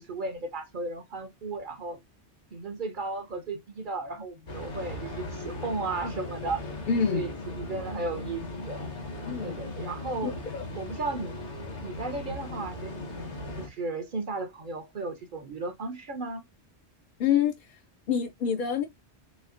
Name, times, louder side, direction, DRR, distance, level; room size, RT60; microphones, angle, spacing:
voice 1, 0.0-2.0 2.5-6.6 7.1-8.9 9.4-10.4 10.7-11.4 11.8-13.2 13.6-16.4, right 3 dB, 55° right, 0.7 m, -35 dB
sound 1, 4.5-13.7, left 2 dB, 80° left, 1.7 m, -38 dB
voice 2, 6.9-7.4 9.2-9.6 10.2-10.7 17.2-17.8 18.1-18.9, left 7 dB, 55° left, 0.6 m, -27 dB
4.2 x 3.2 x 2.4 m
omnidirectional pair, 1.2 m